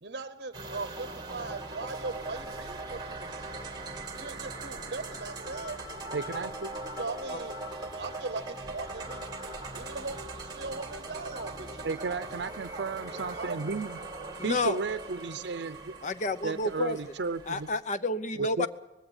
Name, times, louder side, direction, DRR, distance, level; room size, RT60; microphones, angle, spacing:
voice 1, 0.0-3.5 4.2-5.8 7.0-9.2 9.7-11.9 13.2-13.7, right 3 dB, 60° right, 11 dB, 0.9 m, -39 dB
sound 1, 0.5-17.8, right 2 dB, 25° right, 2.2 m, -40 dB
voice 2, 6.1-6.7 11.8-14.0 14.4-15.9 16.4-17.7 18.4-18.7, right 4 dB, 80° right, 11 dB, 0.6 m, -33 dB
voice 3, 14.4-14.8 16.0-17.1 17.5-18.7, left 2 dB, 45° left, 13 dB, 0.8 m, -30 dB
20.0 x 16.0 x 8.9 m, 1.0 s
head